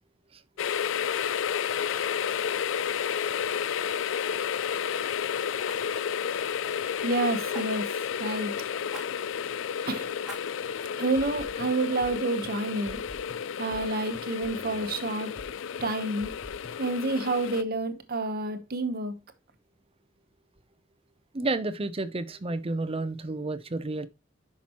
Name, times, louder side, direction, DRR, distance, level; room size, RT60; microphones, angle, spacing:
sound 1, 0.6-17.6, left 8 dB, 80° left, 0.4 m, -31 dB
Fire, 5.6-7.1 7.5-8.1 8.9-9.1 9.5-9.6 10.2-10.8 11.4-11.5, equal, 5° right, 2.8 m, -45 dB
voice 1, 7.0-7.9 8.2-8.5 9.9-10.1 11.0-13.0 13.6-15.3 15.8-16.3 16.8-19.2, right 2 dB, 50° right, 1.1 m, -29 dB
sound 2, 11.2-15.5 15.8-16.7, left 1 dB, 35° left, 3.3 m, -47 dB
voice 2, 21.3-24.1, right 2 dB, 30° right, 0.6 m, -31 dB
9.8 x 6.0 x 3.0 m
head